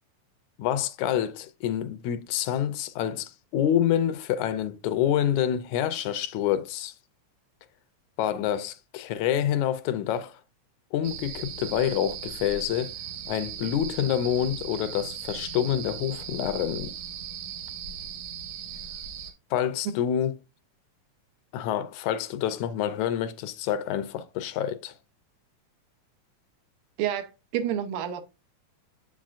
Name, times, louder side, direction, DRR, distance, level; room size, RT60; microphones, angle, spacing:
voice 1, 0.6-7.0 8.2-10.4 10.9-12.9 13.3-16.9 19.5-20.3 21.5-24.9, left 10 dB, 80° left, 1.8 m, -27 dB
sound 1, 11.0-19.3, right 8 dB, 70° right, 2.5 m, -38 dB
voice 2, 27.0-28.2, right 9 dB, 90° right, 2.3 m, -29 dB
7.8 x 7.3 x 2.4 m
omnidirectional pair, 3.5 m